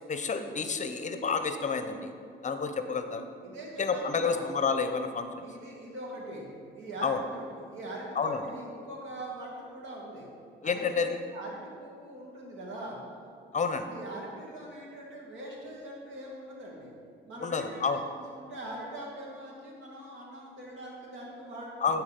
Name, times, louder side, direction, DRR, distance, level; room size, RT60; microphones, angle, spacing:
voice 1, 0.1-2.1 2.4-3.2 3.8-5.5 7.0-7.2 8.2-8.4 10.6-11.1 13.5-13.9 17.4-18.0 21.8-22.0, left 5 dB, 40° left, 8 dB, 0.7 m, -29 dB
voice 2, 3.4-4.4 5.4-6.5 6.8-10.3 10.6-13.0 13.9-16.9 17.2-18.0 18.3-22.0, right 1 dB, 75° right, -3 dB, 2.3 m, -42 dB
11.5 x 4.6 x 5.1 m, 2.3 s
cardioid pair, 90°, 20 cm